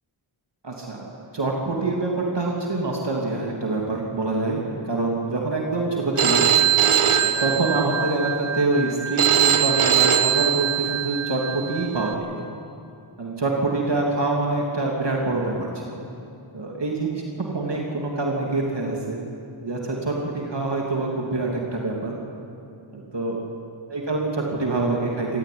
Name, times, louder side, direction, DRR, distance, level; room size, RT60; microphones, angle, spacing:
voice 1, 0.6-6.5 7.2-12.3 13.2-16.0 16.5-19.2 19.6-22.2 22.9-23.4 23.9-25.4, right 2 dB, 55° right, -1 dB, 3.0 m, -25 dB
Telephone, 6.2-12.1, right 9 dB, 75° right, 1.5 m, -21 dB
27.0 x 14.0 x 9.6 m, 2.6 s
wide cardioid pair, 60°, 49 cm